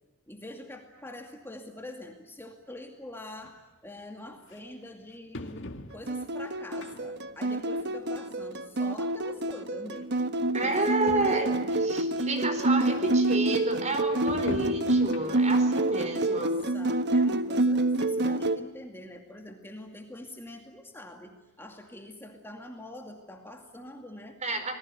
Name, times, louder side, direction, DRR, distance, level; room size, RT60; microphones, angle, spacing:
voice 1, 0.3-10.2 10.6-11.6 12.9-13.2 15.9-24.4, left 1 dB, 10° left, 3 dB, 2.4 m, -45 dB
sound 1, 3.4-3.5 4.5-4.6 5.3-6.3 6.8-7.3 7.7-7.8 8.8-8.9 9.1-9.2 10.0-10.1 10.4-10.5 10.8-10.9 11.1-11.5 12.1-12.2 14.3-15.6 16.0-16.1 16.6-16.7, left 2 dB, 60° left, 2.0 m, -41 dB
sound 2, 6.1-18.6, right 2 dB, 55° right, 1.3 m, -27 dB
voice 2, 10.5-11.5 11.8-16.6 24.4-24.7, right 2 dB, 35° right, 8 dB, 4.4 m, -30 dB
27.5 x 20.0 x 9.5 m, 1.0 s
head